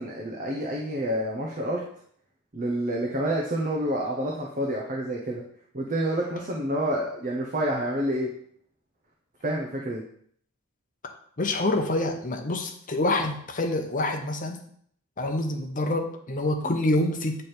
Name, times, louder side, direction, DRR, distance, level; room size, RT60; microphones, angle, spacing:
voice 1, 0.0-1.8 2.5-5.4 5.7-8.3 9.4-10.0 16.6-16.8, right 1 dB, 35° right, -1 dB, 0.8 m, -28 dB
voice 2, 11.4-14.6 15.2-17.4, left 2 dB, 35° left, 4 dB, 0.8 m, -26 dB
8.1 x 3.3 x 4.4 m, 0.64 s
head